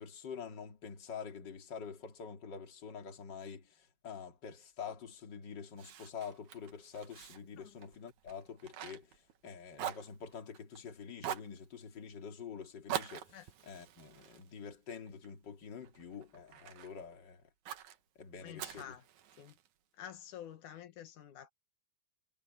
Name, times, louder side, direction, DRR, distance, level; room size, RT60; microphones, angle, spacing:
voice 1, 0.0-17.4 18.2-18.9, left 6 dB, 35° left, 2.9 m, -47 dB
Fire, 5.8-9.5 9.7-10.8 11.2-11.6 12.9-15.3 15.8-16.9 17.7-18.0 18.6-19.7, right 10 dB, 75° right, 2.6 m, -44 dB
voice 2, 18.4-19.0 19.4-19.5 20.0-21.5, left 10 dB, 85° left, 2.9 m, -49 dB
omnidirectional pair, 3.4 m